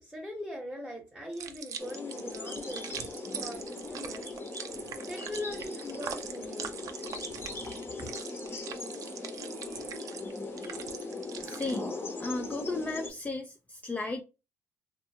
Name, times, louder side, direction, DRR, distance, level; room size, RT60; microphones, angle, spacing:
voice 1, 0.0-4.4 4.7-4.8 5.1-6.7 8.0-8.1, left 1 dB, 5° right, 0.9 m, -41 dB
sound 1, 1.3-11.8, right 7 dB, 60° right, 0.4 m, -42 dB
sound 2, 1.8-13.1, left 3 dB, 40° left, 0.8 m, -39 dB
voice 2, 11.4-14.2, left 3 dB, 20° left, 0.4 m, -35 dB
2.7 x 2.2 x 2.7 m
cardioid pair, 80°, 6 cm